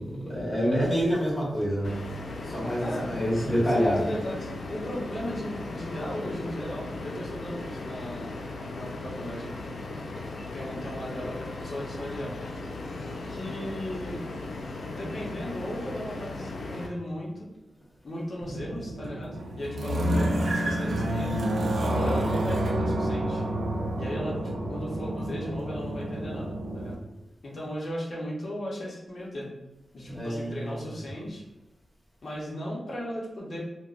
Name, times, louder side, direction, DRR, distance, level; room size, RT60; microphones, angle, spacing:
voice 1, 0.2-1.9 2.4-4.0 30.1-30.7, equal, 25° left, -8 dB, 1.4 m, -26 dB
sound 1, 1.8-16.9, left 2 dB, 75° left, 0.4 m, -37 dB
voice 2, 2.8-3.1 3.4-8.3 8.7-9.5 10.5-12.3 13.3-14.2 14.9-17.5 18.0-21.4 22.0-23.4 24.0-24.4 24.7-27.0 27.4-29.5 29.9-31.4 32.2-33.7, equal, 45° left, -5 dB, 0.8 m, -36 dB
sound 2, 18.4-26.9, right 1 dB, 80° right, 0.4 m, -29 dB
3.4 x 2.1 x 2.5 m, 1.0 s
wide cardioid pair, 165°, 0 cm